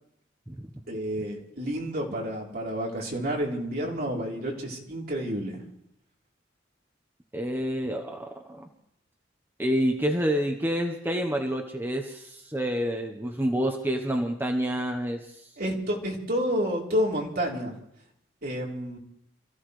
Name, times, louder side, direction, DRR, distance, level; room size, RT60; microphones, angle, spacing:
voice 1, 0.9-5.7 15.6-17.8 18.4-19.0, equal, 50° right, -2 dB, 3.6 m, -30 dB
voice 2, 7.3-8.7 9.6-15.4, equal, 10° right, 3 dB, 1.0 m, -28 dB
27.5 x 15.0 x 3.3 m, 0.76 s
head